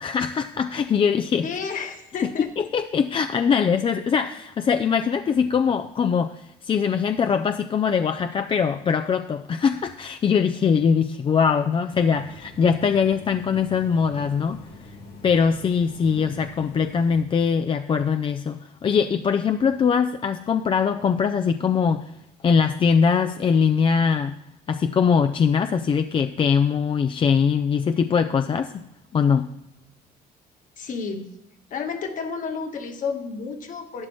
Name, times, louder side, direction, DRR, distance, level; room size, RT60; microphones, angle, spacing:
voice 1, 0.0-1.5 2.2-2.3 2.6-14.6 15.2-22.0 22.4-24.4 24.7-28.8 29.1-29.5, left 6 dB, 30° left, 8 dB, 0.4 m, -22 dB
voice 2, 1.4-2.5 30.8-31.3 31.7-34.1, left 5 dB, 50° left, 5 dB, 1.4 m, -31 dB
sound 1, 11.9-17.2, left 2 dB, 85° left, 1.9 m, -45 dB
12.0 x 9.9 x 3.1 m, 0.81 s
cardioid pair, 110°, 17 cm